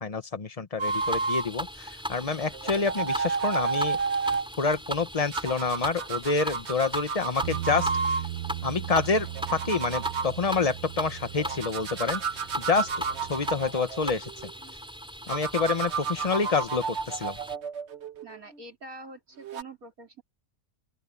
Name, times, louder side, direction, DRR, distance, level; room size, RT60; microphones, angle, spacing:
voice 1, 0.0-4.0 4.6-8.1 8.6-12.9 13.3-14.3 15.3-17.4, left 4 dB, 25° left, 1.1 m, -28 dB
sound 1, 0.8-17.6, equal, 5° right, 4.3 m, -39 dB
sound 2, 0.8-1.5 2.5-4.5 5.3-8.2 9.2-10.3 11.4-14.5 15.3-18.6 19.4-19.6, right 5 dB, 50° right, 1.3 m, -31 dB
Bass guitar, 7.4-13.7, right 15 dB, 90° right, 1.2 m, -38 dB
voice 2, 18.2-20.2, right 2 dB, 65° right, 3.4 m, -45 dB
open air
omnidirectional pair, 1.6 m